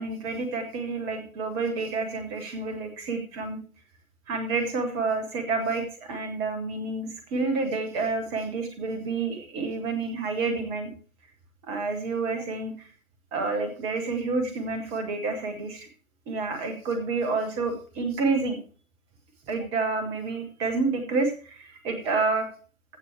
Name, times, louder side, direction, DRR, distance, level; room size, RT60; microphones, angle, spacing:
voice 1, 0.0-3.6 4.3-10.9 11.7-12.9 13.3-15.9 16.3-18.6 19.5-22.5, right 3 dB, 10° right, 7 dB, 0.8 m, -29 dB
15.0 x 6.1 x 4.4 m, 0.40 s
figure-of-eight pair, 140°, 43 cm